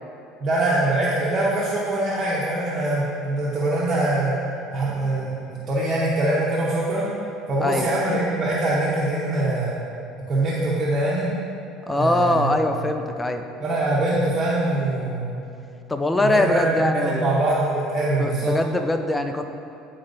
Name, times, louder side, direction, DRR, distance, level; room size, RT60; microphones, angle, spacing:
voice 1, 0.4-4.3 4.7-7.1 7.5-9.7 10.3-11.3 11.9-12.5 12.8-12.9 13.6-15.4 16.2-18.6, right 2 dB, 30° right, -8 dB, 0.8 m, -23 dB
voice 2, 11.9-13.4 15.9-17.2 18.2-19.5, left 1 dB, 10° left, 6 dB, 0.3 m, -22 dB
9.4 x 4.2 x 2.6 m, 2.6 s
cardioid pair, 155°, 0 cm